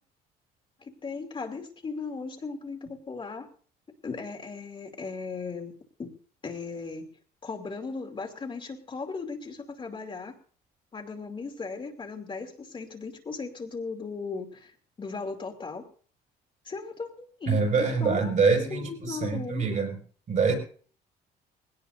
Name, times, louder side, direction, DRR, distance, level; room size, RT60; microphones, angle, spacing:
voice 1, 0.8-3.5 4.0-5.7 6.0-6.1 6.4-7.1 7.4-10.3 10.9-15.8 16.6-18.4 18.7-19.8, left 4 dB, 30° left, 1 dB, 2.7 m, -37 dB
voice 2, 17.5-20.0 20.3-20.5, right 5 dB, 50° right, 1 dB, 6.3 m, -25 dB
20.0 x 18.0 x 2.7 m, 0.44 s
cardioid pair, 110°, 17 cm